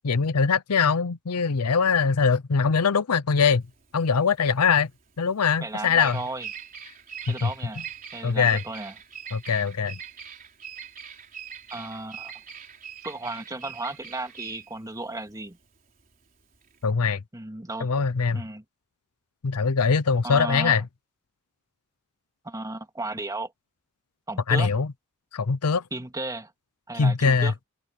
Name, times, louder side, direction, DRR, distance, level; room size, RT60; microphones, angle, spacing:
voice 1, 0.0-3.6 3.9-4.9 5.2-6.2 7.3-7.5 8.2-8.6 9.3-10.0 16.8-17.2 17.8-18.4 19.4-20.8 24.5-24.9 25.3-25.8 27.0-27.5, left 5 dB, 90° left, 0.7 m, -22 dB
Bird vocalization bird call bird song, 3.6-16.9, right 7 dB, 40° right, 3.9 m, -42 dB
voice 2, 5.6-6.5 7.3-7.8 8.1-8.9 11.7-12.3 13.0-15.6 17.3-17.9 18.3-18.6 20.2-20.8 22.4-23.5 24.3-24.7 25.9-26.5 26.9-27.5, right 2 dB, 15° right, 2.2 m, -34 dB
open air
head